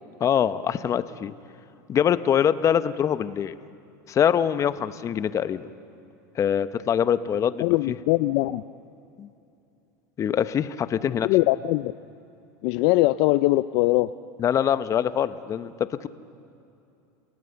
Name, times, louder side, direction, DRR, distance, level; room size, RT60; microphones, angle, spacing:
voice 1, 0.2-1.3 1.9-3.6 4.1-5.6 6.4-7.9 9.2-9.3 10.2-11.3 14.4-15.7 16.0-16.1, left 9 dB, 30° left, 13 dB, 0.8 m, -24 dB
voice 2, 7.6-8.6 11.2-11.9 12.6-14.1, left 19 dB, 60° left, 14 dB, 0.4 m, -21 dB
28.5 x 18.0 x 6.9 m, 2.7 s
supercardioid pair, 115°, 10 cm